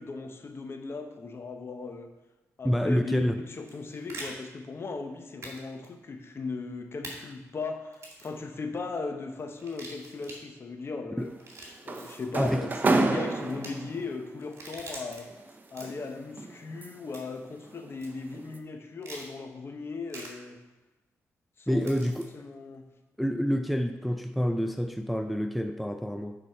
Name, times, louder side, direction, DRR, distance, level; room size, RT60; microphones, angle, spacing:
voice 1, 0.0-2.1 2.6-11.3 11.8-15.3 15.7-20.6 21.6-22.0 22.3-22.9, left 4 dB, 45° left, 6 dB, 0.9 m, -37 dB
voice 2, 2.6-3.4 11.2-11.3 12.4-12.7 21.7-22.3 23.2-26.4, equal, ahead, 7 dB, 0.4 m, -27 dB
sound 1, 3.5-4.3 5.4-5.6 5.8-5.9 7.0-7.2 7.9-8.3 9.6-10.4 11.3-12.3 13.4-13.7 14.4-15.2 15.6-16.1 17.1-17.4 18.0-18.1 19.0-19.3 20.1-20.3 21.8-22.2, right 2 dB, 55° right, 2.3 m, -44 dB
sound 2, 11.2-14.1 15.3-17.2 17.6-17.9 18.3-18.6, right 3 dB, 35° right, 0.7 m, -30 dB
9.3 x 4.1 x 4.4 m, 1.1 s
cardioid pair, 75°, 6 cm